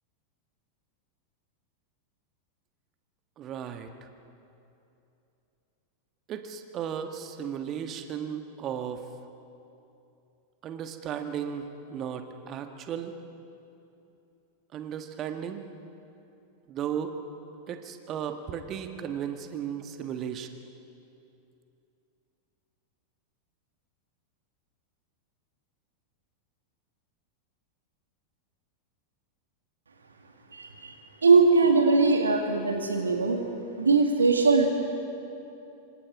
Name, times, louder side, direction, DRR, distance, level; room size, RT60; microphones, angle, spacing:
voice 1, 3.4-3.9 6.3-9.0 10.6-13.1 14.7-15.6 16.7-17.1 17.7-20.5, right 8 dB, 30° right, 7 dB, 1.6 m, -35 dB
voice 2, 30.5-31.0 31.2-33.4 33.8-34.7, right 4 dB, 75° right, 4 dB, 1.9 m, -21 dB
26.5 x 25.5 x 4.9 m, 2.8 s
figure-of-eight pair, 90°, 0 cm